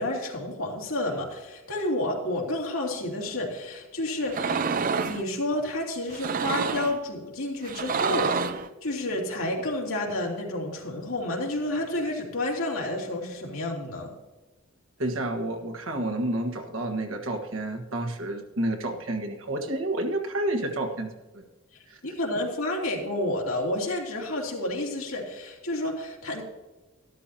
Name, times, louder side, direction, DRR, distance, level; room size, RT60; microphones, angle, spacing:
voice 1, 0.0-4.7 5.0-8.5 8.8-14.1 22.0-26.4, left 1 dB, 80° left, -1 dB, 2.7 m, -30 dB
sound 1, 4.3-5.2 6.1-7.0 7.6-8.7, right 5 dB, 40° right, 0.5 m, -28 dB
voice 2, 15.0-21.4 21.9-22.0 22.3-22.4, right 1 dB, 70° right, 4 dB, 1.5 m, -30 dB
13.0 x 12.5 x 2.8 m, 1.1 s
head